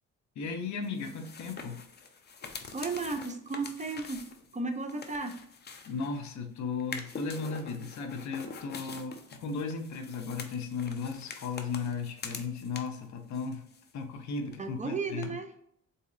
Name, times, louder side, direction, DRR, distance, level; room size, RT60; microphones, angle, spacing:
voice 1, 0.4-1.8 5.9-13.7 13.9-15.4, left 5 dB, 70° left, 5 dB, 0.7 m, -36 dB
sound 1, 0.8-6.3 6.8-13.1 13.3-14.2 14.5-14.6 15.2-15.3, left 5 dB, 35° left, 0.6 m, -45 dB
voice 2, 2.7-4.3 4.5-5.4 14.6-15.5, right 3 dB, 25° right, 6 dB, 0.5 m, -34 dB
3.8 x 2.7 x 2.5 m, 0.71 s
cardioid pair, 90°, 30 cm